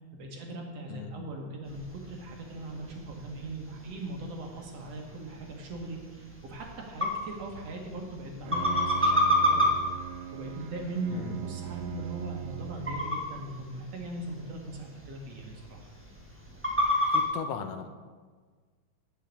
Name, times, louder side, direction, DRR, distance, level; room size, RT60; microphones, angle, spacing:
voice 1, 0.0-9.7 10.3-15.9, right 2 dB, 60° right, 1 dB, 2.1 m, -39 dB
voice 2, 0.9-1.3 11.1-11.4 17.1-17.9, left 7 dB, 80° left, 8 dB, 2.3 m, -38 dB
sound 1, 1.6-17.3, left 1 dB, 20° right, 0.3 m, -32 dB
Bowed string instrument, 8.2-13.3, right 13 dB, 85° right, 2.2 m, -40 dB
10.0 x 6.2 x 8.2 m, 1.5 s
omnidirectional pair, 3.7 m